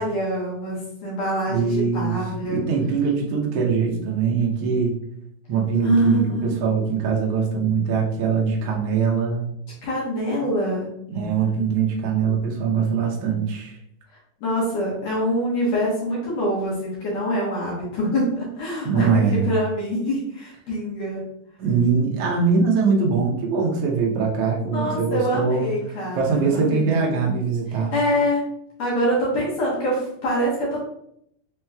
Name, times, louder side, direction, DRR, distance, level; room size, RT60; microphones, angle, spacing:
voice 1, 0.0-2.6 5.8-6.7 9.8-10.9 14.4-21.2 24.7-27.0 27.9-28.4 28.8-30.8, equal, 65° left, -6 dB, 2.2 m, -25 dB
voice 2, 1.5-2.2 2.4-5.0 5.5-9.5 11.1-13.8 18.8-19.5 21.6-25.7 26.1-27.9, right 5 dB, 70° right, -1 dB, 1.6 m, -22 dB
5.5 x 2.9 x 2.2 m, 0.73 s
omnidirectional pair, 3.4 m